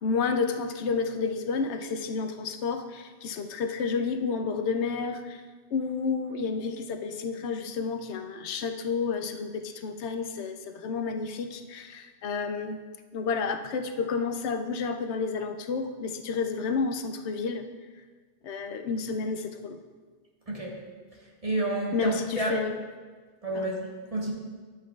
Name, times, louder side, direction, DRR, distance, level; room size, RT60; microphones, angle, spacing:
voice 1, 0.0-5.4 5.7-12.8 13.1-17.6 18.4-19.8 21.9-22.8 23.5-23.7, left 5 dB, 80° left, 7 dB, 0.9 m, -30 dB
voice 2, 20.5-20.8 21.4-22.6 23.4-24.3, right 1 dB, 30° right, -3 dB, 1.3 m, -30 dB
10.5 x 7.7 x 2.3 m, 1.4 s
omnidirectional pair, 1.2 m